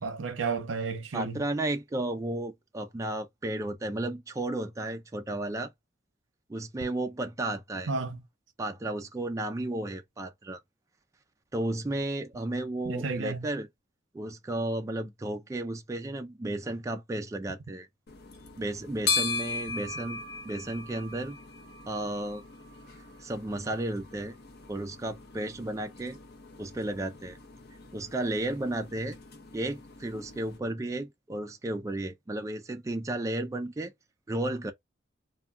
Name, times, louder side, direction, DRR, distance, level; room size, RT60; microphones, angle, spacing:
voice 1, 0.0-1.4 7.9-8.2 12.9-13.5, right 4 dB, 80° right, 0.6 m, -32 dB
voice 2, 1.1-5.7 6.5-7.9 8.6-10.6 11.5-13.7 14.1-17.9 18.6-21.4 21.9-22.4 23.2-24.4 24.7-26.2 26.6-27.4 27.9-29.2 29.5-33.9 34.3-34.7, right 1 dB, 15° right, 0.3 m, -33 dB
sound 1, 18.1-30.6, left 4 dB, 60° left, 0.7 m, -38 dB
2.2 x 2.2 x 3.6 m
head